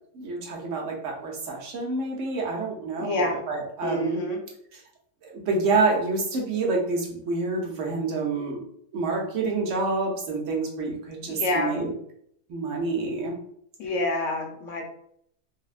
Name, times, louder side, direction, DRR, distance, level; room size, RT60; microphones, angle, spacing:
voice 1, 0.1-4.2 5.2-8.6 8.9-11.9 12.5-13.3, right 3 dB, 60° right, -1 dB, 1.0 m, -27 dB
voice 2, 3.0-3.4 3.8-4.4 11.3-11.7 13.8-14.8, left 2 dB, 65° left, 2 dB, 0.9 m, -27 dB
3.4 x 2.1 x 2.4 m, 0.68 s
omnidirectional pair, 1.5 m